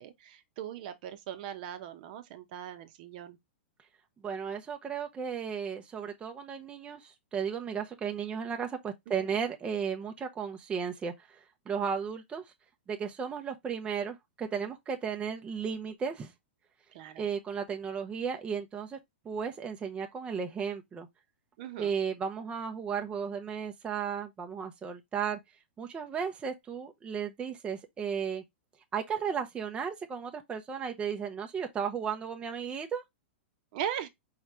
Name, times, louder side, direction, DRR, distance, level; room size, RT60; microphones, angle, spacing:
voice 1, 0.0-3.4 9.2-9.4 16.9-17.2 21.6-21.9 33.7-34.1, right 10 dB, 55° right, 0.9 m, -39 dB
voice 2, 4.2-11.4 11.7-12.4 12.9-16.3 17.2-19.0 19.2-21.1 21.8-25.4 25.8-28.4 28.9-33.0, right 7 dB, 20° right, 0.7 m, -34 dB
4.7 x 3.1 x 3.3 m
hypercardioid pair, 125°, 6 cm